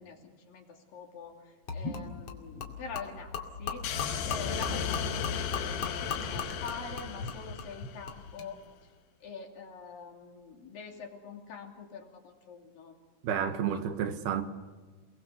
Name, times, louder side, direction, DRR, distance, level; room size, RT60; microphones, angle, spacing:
voice 1, 0.0-3.9 4.2-8.6 9.2-13.0 13.5-13.8, left 5 dB, 60° left, 4.5 m, -45 dB
Gurgling / Liquid, 1.7-8.5, left 5 dB, 40° left, 3.0 m, -39 dB
sound 1, 3.8-8.2, left 6 dB, 80° left, 3.4 m, -35 dB
voice 2, 13.2-14.4, right 8 dB, 75° right, 3.4 m, -30 dB
29.0 x 21.0 x 6.9 m
omnidirectional pair, 4.6 m